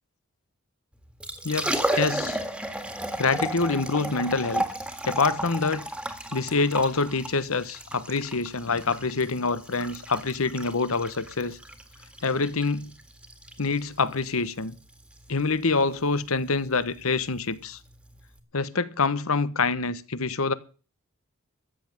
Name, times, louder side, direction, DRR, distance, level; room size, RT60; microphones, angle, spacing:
Liquid, 1.0-18.4, right 1 dB, 5° right, 1.8 m, -34 dB
voice 1, 1.4-2.4 3.2-4.6 5.0-5.9 6.3-11.6 12.2-12.9 13.6-14.8 15.3-17.8 18.5-20.5, left 4 dB, 75° left, 1.1 m, -26 dB
14.0 x 8.4 x 9.2 m
head